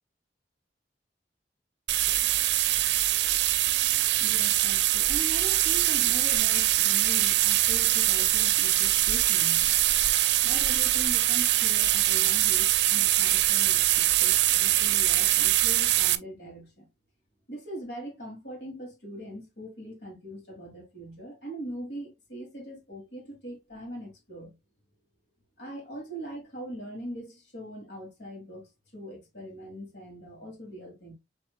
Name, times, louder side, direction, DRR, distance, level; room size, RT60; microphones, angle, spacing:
sound 1, 1.9-16.1, right 14 dB, 75° right, 0.5 m, -23 dB
voice 1, 4.2-9.7 10.4-16.9 17.5-24.5 25.6-31.1, right 1 dB, 75° left, 2.5 m, -41 dB
6.3 x 3.6 x 2.2 m
head